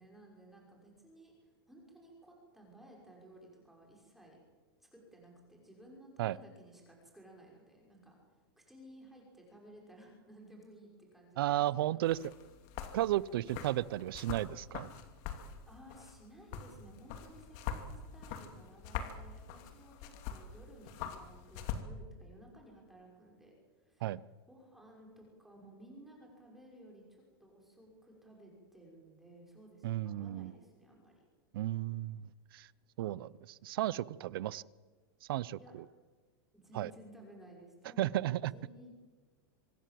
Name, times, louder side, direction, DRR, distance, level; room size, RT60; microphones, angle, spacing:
voice 1, 0.0-4.4 4.8-8.2 8.6-12.0 15.7-24.2 24.5-31.3 35.6-35.7 36.5-39.0, right 1 dB, ahead, -1 dB, 6.1 m, -57 dB
voice 2, 11.4-12.2 12.9-14.9 24.0-24.2 29.8-30.5 31.5-32.3 32.5-32.7 33.0-34.6 35.3-35.6 36.7-36.9 38.0-38.5, right 14 dB, 65° right, 21 dB, 0.7 m, -33 dB
sound 1, 12.0-21.8, left 8 dB, 45° left, 2.8 m, -44 dB
25.5 x 20.5 x 7.7 m, 1.3 s
supercardioid pair, 160°, 13 cm